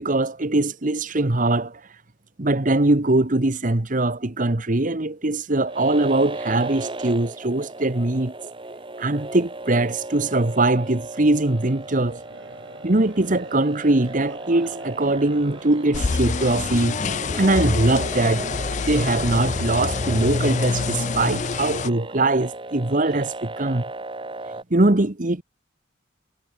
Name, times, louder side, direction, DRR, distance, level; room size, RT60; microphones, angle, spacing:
voice 1, 0.0-1.8 2.4-8.3 9.0-12.2 12.8-17.0 17.4-18.5 18.9-23.8 24.7-25.4, right 2 dB, 45° right, 1.3 m, -21 dB
sound 1, 5.7-24.6, right 2 dB, 25° right, 2.1 m, -36 dB
Crowd, 11.4-21.6, right 2 dB, 80° right, 4.2 m, -46 dB
sound 2, 15.9-21.9, left 4 dB, 40° left, 0.4 m, -26 dB
head